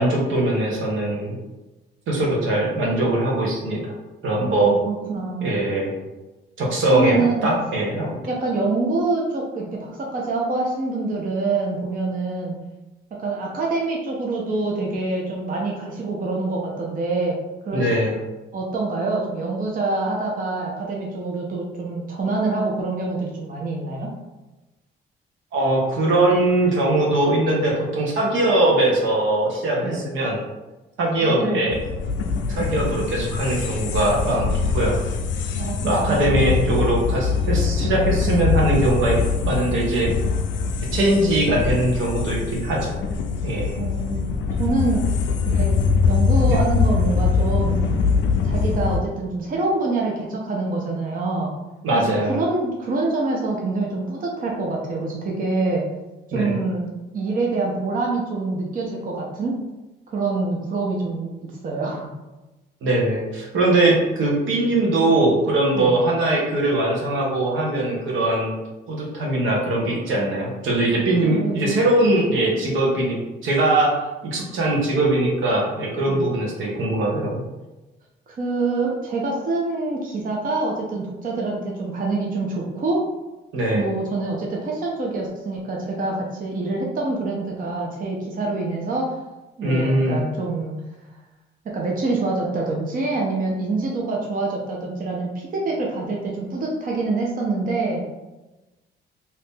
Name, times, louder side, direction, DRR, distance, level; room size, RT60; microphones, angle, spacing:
voice 1, 0.0-1.4 2.1-3.8 4.2-4.7 5.4-5.9 6.6-7.2 7.4-8.2 17.7-18.1 25.5-30.4 31.0-31.8 32.5-35.0 35.8-40.1 40.9-42.9 43.4-43.8 46.4-46.6 51.8-52.3 56.3-56.5 62.8-68.5 68.9-73.9 74.2-77.4 83.5-83.9 89.6-90.2, right 1 dB, 80° right, -2 dB, 1.0 m, -21 dB
voice 2, 4.5-5.5 6.9-7.5 8.3-12.6 13.1-17.4 17.6-17.9 18.5-24.1 29.8-30.0 31.0-31.6 35.6-36.5 43.8-44.2 44.6-45.1 45.5-45.8 46.1-47.8 48.4-51.5 51.9-55.8 56.3-56.9 57.1-59.6 60.1-62.1 65.7-65.9 71.2-71.8 76.1-76.3 78.3-83.1 83.7-89.2 89.6-90.8 91.6-98.0, right 3 dB, 45° right, -2 dB, 0.7 m, -26 dB
sound 1, 31.7-49.0, left 5 dB, 70° left, 0.4 m, -23 dB
2.8 x 2.5 x 3.6 m, 1.1 s
cardioid pair, 90°, 20 cm